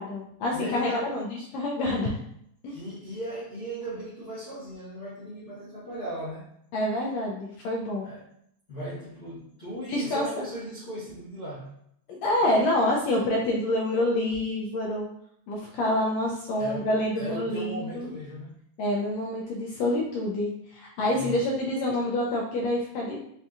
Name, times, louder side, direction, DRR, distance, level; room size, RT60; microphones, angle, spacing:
voice 1, 0.0-2.2 2.6-2.8 6.7-8.1 9.9-10.2 12.1-15.1 15.5-18.1 18.8-23.2, left 1 dB, 80° left, -2 dB, 1.5 m, -27 dB
voice 2, 0.5-1.2 2.7-6.5 8.0-8.3 8.7-11.7 12.4-12.7 16.6-18.6 21.1-21.5, right 1 dB, 60° left, -12 dB, 0.7 m, -37 dB
5.3 x 2.7 x 2.4 m, 0.72 s
omnidirectional pair, 3.3 m